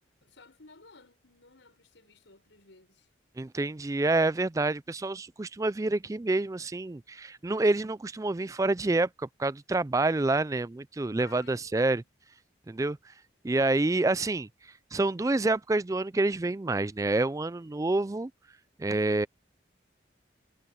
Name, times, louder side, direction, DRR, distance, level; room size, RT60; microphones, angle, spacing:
voice 1, 0.2-3.1 11.2-12.1, left 4 dB, 75° left, 5.4 m, -56 dB
voice 2, 3.4-12.0 12.7-13.0 13.4-14.5 14.9-18.3 18.8-19.3, right 2 dB, 15° right, 0.3 m, -27 dB
head